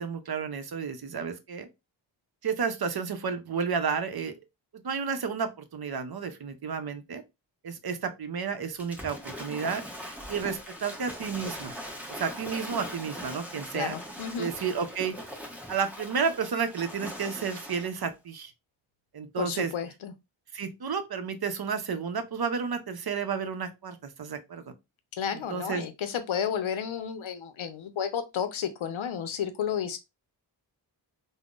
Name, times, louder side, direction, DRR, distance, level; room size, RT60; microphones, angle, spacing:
voice 1, 0.0-1.7 2.4-4.3 4.7-7.2 7.6-11.8 12.1-13.9 14.4-15.1 15.7-18.5 19.1-19.7 20.5-24.6 25.5-25.8, right 6 dB, 55° right, 0.6 m, -31 dB
Waves surf / Splash splatter, 8.8-18.1, equal, 5° right, 0.9 m, -41 dB
voice 2, 13.7-14.5 19.4-20.1 25.1-30.0, left 8 dB, 80° left, 0.6 m, -32 dB
3.5 x 2.1 x 2.4 m
cardioid pair, 45°, 47 cm